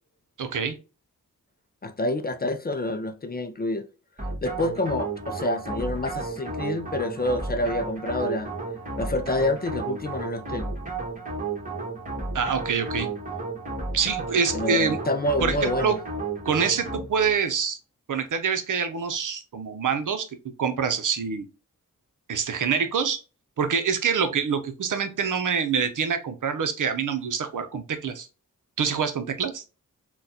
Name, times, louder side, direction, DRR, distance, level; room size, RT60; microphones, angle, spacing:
voice 1, 0.4-0.8 12.3-13.1 13.9-15.0 15.4-16.0 16.5-17.8 18.1-20.3 20.6-21.4 22.3-23.2 23.6-28.3 28.8-29.6, right 6 dB, 70° right, 0.6 m, -26 dB
voice 2, 1.8-3.9 4.4-8.5 9.0-10.7 14.5-16.0, left 1 dB, 30° left, 0.4 m, -27 dB
sound 1, 4.2-17.4, right 3 dB, 25° right, 1.5 m, -33 dB
3.8 x 2.3 x 2.7 m
cardioid pair, 55°, 33 cm